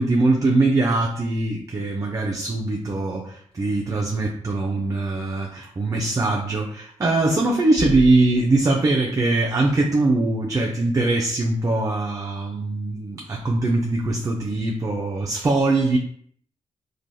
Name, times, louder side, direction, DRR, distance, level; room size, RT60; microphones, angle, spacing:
voice 1, 0.0-16.0, right 2 dB, 30° right, -1 dB, 0.4 m, -22 dB
3.0 x 2.2 x 2.6 m, 0.64 s
cardioid pair, 80°, 12 cm